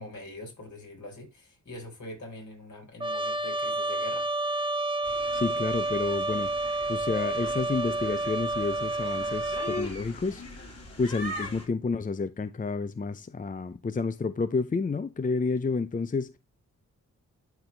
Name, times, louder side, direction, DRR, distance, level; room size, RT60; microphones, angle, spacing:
voice 1, 0.0-4.3, left 2 dB, 65° left, 4.3 m, -43 dB
Trumpet, 3.0-9.9, right 2 dB, 15° right, 0.6 m, -30 dB
sound 1, 5.0-11.6, left 1 dB, 50° left, 3.8 m, -41 dB
voice 2, 5.3-6.5 6.9-10.4 11.0-16.4, left 4 dB, 25° left, 0.5 m, -30 dB
12.0 x 4.4 x 3.2 m
cardioid pair, 80°, 31 cm